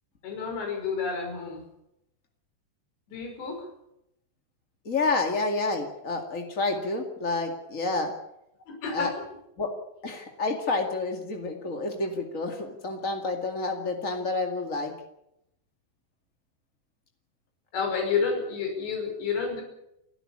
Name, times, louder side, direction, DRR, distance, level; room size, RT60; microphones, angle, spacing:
voice 1, 0.2-1.6 3.1-3.7 8.7-9.1 17.7-19.6, left 5 dB, 65° left, 2 dB, 7.7 m, -30 dB
voice 2, 4.8-8.1 8.9-9.1 9.6-9.7 10.0-14.9, left 3 dB, 50° left, 3 dB, 0.9 m, -29 dB
29.5 x 12.5 x 8.7 m, 0.82 s
omnidirectional pair, 5.4 m